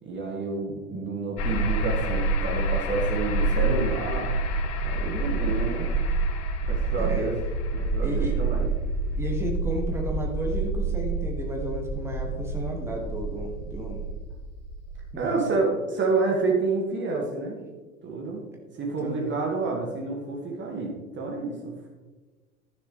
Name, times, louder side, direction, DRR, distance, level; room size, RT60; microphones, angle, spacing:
voice 1, 0.0-4.3 4.8-5.9 6.7-7.3 7.7-8.7 15.2-17.6 18.0-18.4 18.8-21.7, right 3 dB, 25° right, 0 dB, 2.1 m, -29 dB
sound 1, 1.4-15.1, right 2 dB, 35° left, 1.1 m, -28 dB
voice 2, 7.0-7.3 8.0-8.4 9.2-14.0 15.1-15.6 19.0-19.3, right 1 dB, 5° right, -1 dB, 2.1 m, -33 dB
14.0 x 7.0 x 3.3 m, 1.3 s
figure-of-eight pair, 80°, 41 cm